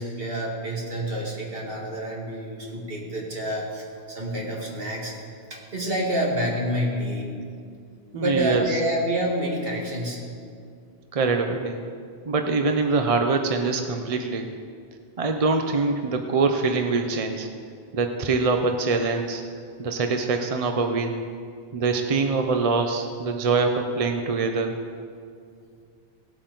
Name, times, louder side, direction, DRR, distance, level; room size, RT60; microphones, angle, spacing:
voice 1, 0.0-5.1 5.5-7.3 8.1-10.2, equal, 65° right, -3 dB, 2.3 m, -28 dB
voice 2, 8.1-8.6 11.1-11.8 12.3-14.5 15.2-17.5 17.9-19.4 19.8-21.2 21.7-24.7, right 4 dB, 40° right, 5 dB, 0.7 m, -24 dB
17.5 x 8.5 x 3.9 m, 2.2 s
omnidirectional pair, 1.1 m